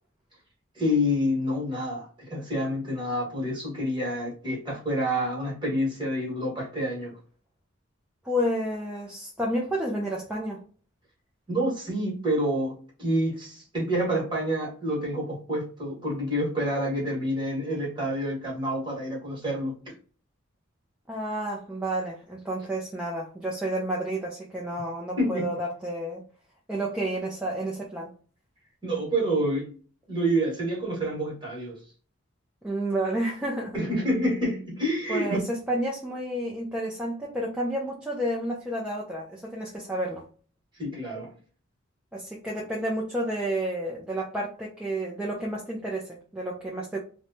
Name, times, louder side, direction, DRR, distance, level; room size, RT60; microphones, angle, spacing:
voice 1, 0.7-7.2 11.5-19.9 25.2-25.5 28.8-29.7 30.1-31.8 33.7-35.4 40.8-41.3, equal, 20° right, 1.3 m, -28 dB
voice 2, 8.2-10.6 21.1-26.2 26.7-28.1 32.6-33.8 35.1-40.2 42.1-47.0, right 1 dB, 5° right, 0.4 m, -30 dB
3.0 x 2.2 x 2.6 m
head